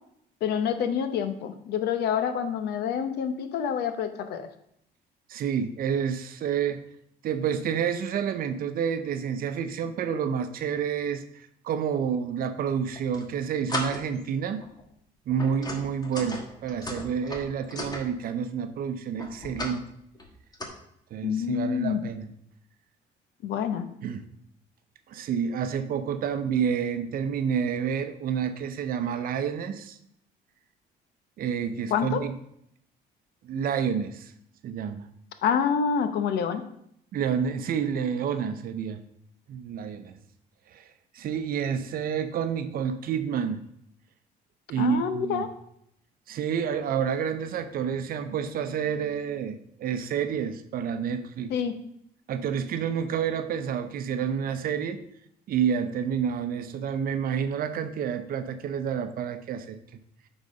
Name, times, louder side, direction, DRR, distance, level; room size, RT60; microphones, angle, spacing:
voice 1, 0.4-4.5 21.2-22.0 23.4-23.9 31.9-32.2 35.4-36.6 44.8-45.5 51.5-51.7, left 7 dB, 75° left, 9 dB, 0.9 m, -27 dB
voice 2, 5.3-6.8 7.2-14.6 15.3-19.9 21.1-22.3 24.0-24.2 25.1-30.0 31.4-32.3 33.4-34.3 34.6-35.1 37.1-39.0 39.5-40.2 40.7-40.9 41.1-43.6 44.7-45.4 46.3-51.5 52.3-55.0 55.5-59.8, right 7 dB, 60° right, 9 dB, 0.7 m, -29 dB
sound 1, 12.9-13.3 13.7-14.2 14.6-14.8 15.3-18.1 19.2-19.8 20.1-20.7, left 1 dB, 25° left, 1.4 m, -36 dB
9.2 x 4.0 x 5.1 m, 0.72 s
cardioid pair, 110°, 17 cm